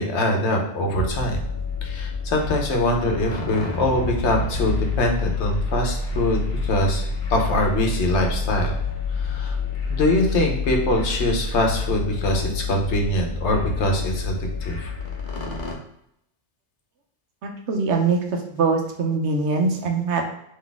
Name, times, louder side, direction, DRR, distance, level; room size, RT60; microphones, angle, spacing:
voice 1, 0.0-1.4 1.8-7.0 7.3-8.7 9.1-9.6 9.9-14.3 14.6-14.9, left 1 dB, 75° left, 2 dB, 1.1 m, -23 dB
sound 1, 1.0-15.7, left 4 dB, 50° left, 0.9 m, -28 dB
voice 2, 17.4-18.2 18.5-20.3, right 4 dB, 75° right, 3 dB, 1.0 m, -22 dB
3.9 x 3.1 x 3.5 m, 0.76 s
omnidirectional pair, 1.2 m